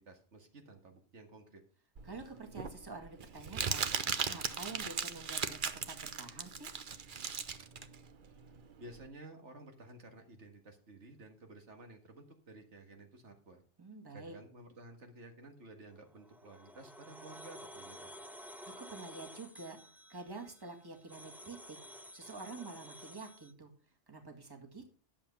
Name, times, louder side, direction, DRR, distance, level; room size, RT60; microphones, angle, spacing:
voice 1, 0.0-1.6 8.3-8.4 8.8-13.6 14.1-18.2, right 2 dB, 70° right, 4 dB, 1.9 m, -53 dB
voice 2, 2.0-6.7 13.8-14.4 18.8-19.8 20.1-21.8 22.1-23.7 24.1-24.9, right 3 dB, 20° right, 2 dB, 1.8 m, -48 dB
Crumpling crinkling, 2.0-9.0, right 6 dB, 50° right, 0.9 m, -38 dB
sound 1, 16.1-23.5, equal, ahead, 0.4 m, -52 dB
11.0 x 7.4 x 5.6 m, 0.40 s
omnidirectional pair, 1.2 m